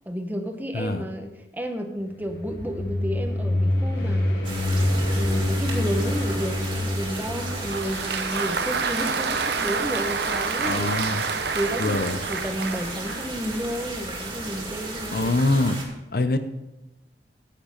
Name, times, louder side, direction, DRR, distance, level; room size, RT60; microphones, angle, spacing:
voice 1, 0.1-4.3 5.1-10.9 11.5-15.3, equal, 10° right, 5 dB, 0.9 m, -31 dB
voice 2, 0.7-1.0 10.7-11.3 11.8-12.2 15.1-15.8 16.1-16.4, left 2 dB, 55° left, 10 dB, 0.7 m, -24 dB
sound 1, 2.1-7.8, left 1 dB, 80° left, 3.7 m, -26 dB
sound 2, 4.4-15.9, right 2 dB, 30° right, 2.4 m, -35 dB
Applause, 7.2-13.4, right 5 dB, 65° right, 0.8 m, -29 dB
10.0 x 9.0 x 5.1 m, 0.97 s
head